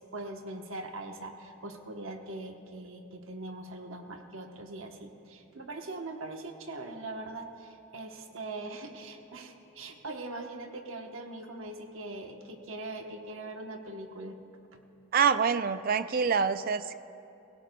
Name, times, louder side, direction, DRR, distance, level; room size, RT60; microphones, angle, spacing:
voice 1, 0.0-14.4 14.7-14.8, right 2 dB, 70° right, 4 dB, 1.0 m, -41 dB
voice 2, 15.1-16.9, right 6 dB, 45° right, 12 dB, 0.4 m, -26 dB
22.0 x 16.5 x 2.2 m, 2.7 s
head